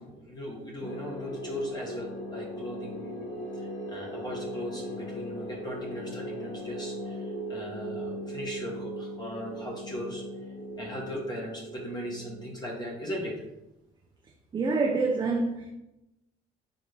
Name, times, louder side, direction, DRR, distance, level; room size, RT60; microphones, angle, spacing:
voice 1, 0.0-3.3 3.5-10.2 10.8-13.3, equal, 25° left, 1.1 m, -38 dB
sound 1, 0.8-13.6, equal, 50° left, 0.9 m, -39 dB
voice 2, 14.5-15.7, right 3 dB, 25° right, 0.5 m, -26 dB
4.0 x 3.6 x 3.3 m
cardioid pair, 110°, 17 cm